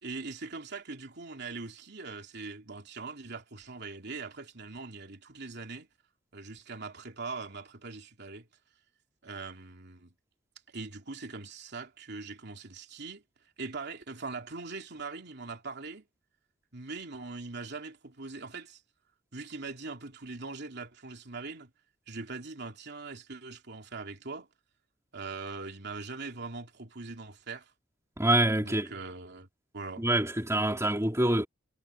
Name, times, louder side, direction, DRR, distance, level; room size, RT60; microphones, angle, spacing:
voice 1, 0.0-5.9 6.3-8.5 9.2-10.1 10.7-13.2 13.6-16.1 16.7-18.8 19.3-21.7 22.1-24.5 25.1-27.7 28.6-29.5 29.7-30.0, right 3 dB, 60° right, 3.1 m, -41 dB
voice 2, 28.2-28.9 30.0-31.5, right 1 dB, 15° right, 2.7 m, -26 dB
head